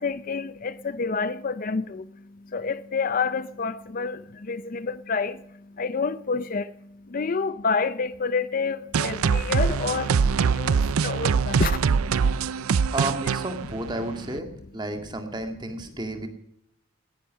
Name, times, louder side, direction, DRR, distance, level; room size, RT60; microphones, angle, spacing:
voice 1, 0.0-12.9, left 4 dB, 40° left, 0.5 m, -29 dB
sound 1, 8.9-14.4, right 6 dB, 85° right, 0.5 m, -23 dB
voice 2, 12.9-16.3, right 1 dB, 20° right, 2.0 m, -32 dB
18.5 x 10.5 x 6.3 m
head